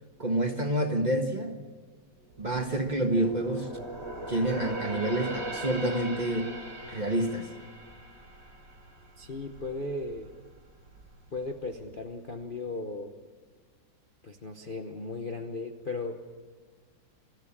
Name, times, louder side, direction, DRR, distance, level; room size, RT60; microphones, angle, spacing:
voice 1, 0.2-1.5 2.4-3.7 4.3-6.5 6.9-7.5, right 1 dB, 25° right, 4 dB, 1.5 m, -28 dB
sound 1, 2.2-9.7 10.1-10.3 10.9-11.6 11.9-12.0, right 1 dB, 45° right, 4.5 m, -40 dB
voice 2, 9.2-10.3 11.3-13.1 14.2-16.2, left 3 dB, 35° left, 4 dB, 0.9 m, -36 dB
24.5 x 14.5 x 8.7 m, 1.5 s
omnidirectional pair, 2.0 m